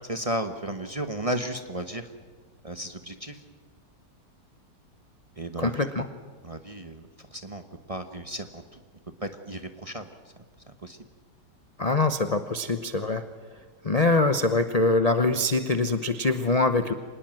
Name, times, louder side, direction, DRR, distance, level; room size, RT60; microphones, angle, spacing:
voice 1, 0.1-2.1 2.6-3.4 5.4-5.9 6.4-7.6 7.9-8.8 9.2-10.1 10.8-11.0, right 1 dB, 25° right, 7 dB, 1.0 m, -34 dB
voice 2, 5.6-6.1 11.8-13.2 13.8-16.9, left 2 dB, 35° left, 9 dB, 0.7 m, -23 dB
25.5 x 19.5 x 7.7 m, 1.5 s
omnidirectional pair, 1.9 m